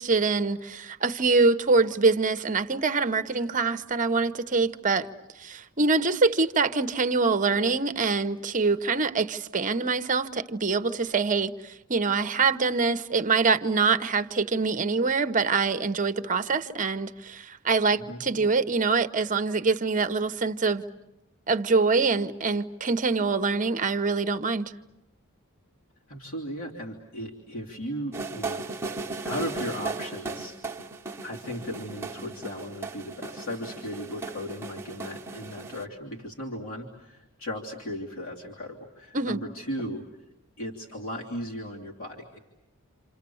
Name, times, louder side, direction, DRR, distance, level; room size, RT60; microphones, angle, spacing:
voice 1, 0.0-5.1 5.4-20.8 21.5-24.7 39.1-39.4, right 4 dB, 35° right, 0.9 m, -25 dB
voice 2, 17.9-18.4 26.1-28.7 29.2-30.6 31.2-40.0 40.6-42.4, equal, 65° left, 3.1 m, -36 dB
sound 1, 28.1-35.8, right 3 dB, 10° right, 1.3 m, -36 dB
28.5 x 28.0 x 7.1 m
head